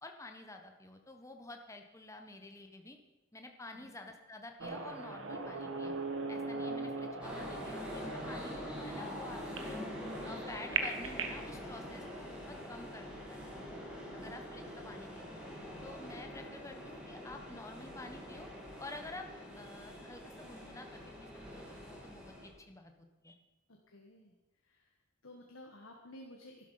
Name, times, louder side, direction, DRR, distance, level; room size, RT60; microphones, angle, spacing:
voice 1, 0.0-3.0 3.3-5.9 6.3-9.9 10.2-13.4 14.1-15.4 15.8-18.5 18.8-19.3 19.6-23.4, left 2 dB, 15° left, 4 dB, 1.1 m, -50 dB
sound 1, 4.6-11.4, right 4 dB, 75° right, 1.5 m, -40 dB
sound 2, 7.2-22.5, equal, 5° right, 3.2 m, -45 dB
voice 2, 14.0-14.4 23.7-24.3 24.6-24.9 25.2-26.7, left 1 dB, 80° left, 1 dB, 1.6 m, -54 dB
12.0 x 12.0 x 5.7 m, 1.1 s
head